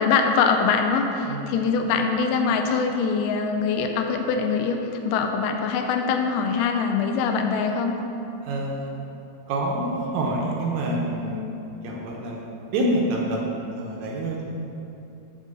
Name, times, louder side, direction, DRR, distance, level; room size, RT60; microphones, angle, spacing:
voice 1, 0.0-4.8 5.0-7.9, left 5 dB, 90° left, 4 dB, 1.8 m, -23 dB
voice 2, 8.4-9.1 9.5-11.5 11.8-12.4 12.7-14.6, right 1 dB, 80° right, -2 dB, 1.6 m, -27 dB
8.6 x 3.8 x 6.5 m, 2.9 s
omnidirectional pair, 4.3 m